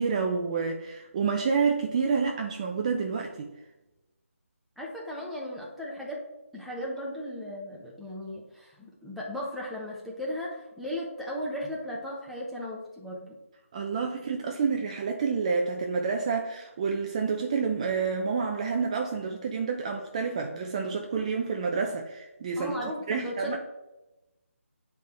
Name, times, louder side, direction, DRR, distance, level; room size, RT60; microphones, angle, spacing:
voice 1, 0.0-3.5 13.7-22.8 23.1-23.6, right 5 dB, 30° right, 2 dB, 0.6 m, -29 dB
voice 2, 4.8-6.2 6.5-13.4 22.6-23.6, equal, ahead, -6 dB, 0.9 m, -36 dB
9.3 x 3.6 x 4.3 m, 1.0 s
figure-of-eight pair, 160°, 8 cm